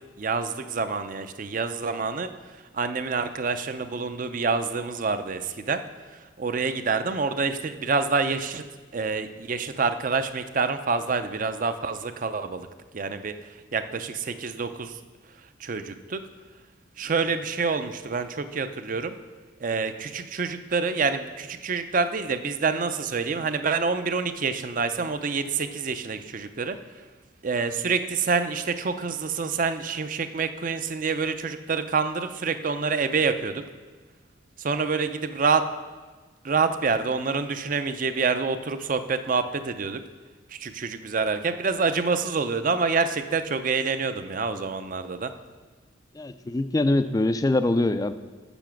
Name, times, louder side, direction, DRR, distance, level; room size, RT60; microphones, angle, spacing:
voice 1, 0.2-2.3 2.7-5.8 6.4-8.6 8.9-12.7 12.9-13.3 13.7-15.0 15.6-16.2 17.0-19.2 19.6-26.8 27.4-33.6 34.6-35.6 36.4-40.0 40.5-45.3, right 4 dB, 40° right, 10 dB, 0.5 m, -27 dB
voice 2, 46.2-48.1, left 2 dB, 20° left, 11 dB, 0.3 m, -23 dB
7.5 x 7.0 x 5.9 m, 1.4 s
head